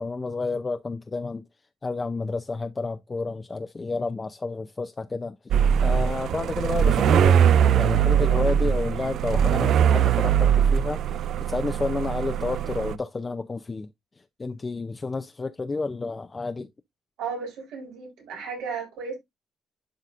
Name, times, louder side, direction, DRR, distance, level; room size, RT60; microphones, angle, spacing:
voice 1, 0.0-1.4 1.8-5.4 5.8-11.0 11.5-13.9 14.4-16.7, left 3 dB, 25° left, 0.5 m, -30 dB
sound 1, 5.5-13.0, right 9 dB, 70° right, 0.4 m, -21 dB
voice 2, 17.2-19.2, right 5 dB, 90° right, 3.7 m, -34 dB
11.5 x 3.9 x 2.5 m
cardioid pair, 90°, 0 cm